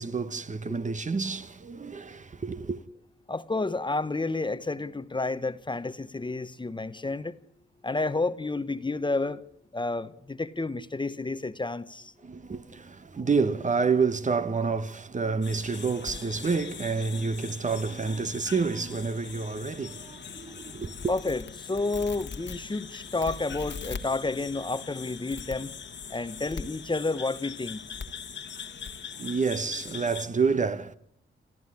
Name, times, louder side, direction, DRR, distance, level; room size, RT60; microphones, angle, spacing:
voice 1, 0.0-2.8 12.2-21.1 29.2-30.9, right 4 dB, 40° right, 1.1 m, -29 dB
voice 2, 3.3-7.3 7.8-9.4 9.7-12.1 21.1-25.7 26.1-27.9, left 3 dB, 25° left, 1.0 m, -30 dB
sound 1, 15.4-30.3, left 6 dB, 65° left, 1.6 m, -41 dB
29.0 x 13.5 x 9.8 m
cardioid pair, 80°, 21 cm